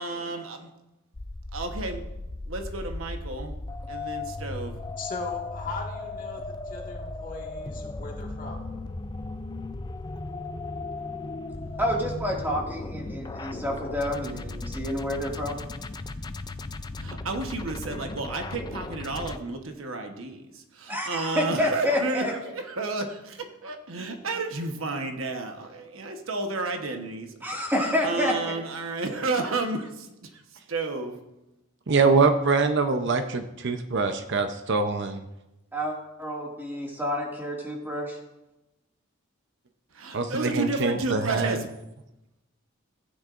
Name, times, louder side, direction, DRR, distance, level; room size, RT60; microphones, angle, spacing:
voice 1, 0.0-0.6 1.5-2.0 2.4-3.6 3.9-4.8 17.0-27.3 27.8-31.2 39.9-41.7, right 3 dB, 75° right, 4 dB, 1.1 m, -32 dB
sound 1, 1.1-19.4, left 3 dB, 20° left, 0.4 m, -36 dB
voice 2, 5.0-8.7, left 2 dB, 40° left, 0 dB, 1.8 m, -39 dB
voice 3, 11.8-15.6 20.9-22.3 27.4-28.3 35.7-38.2, left 1 dB, 10° right, -2 dB, 2.0 m, -29 dB
voice 4, 31.9-35.2 40.1-41.6, right 4 dB, 60° right, 7 dB, 0.7 m, -24 dB
15.5 x 9.5 x 2.5 m, 0.93 s
head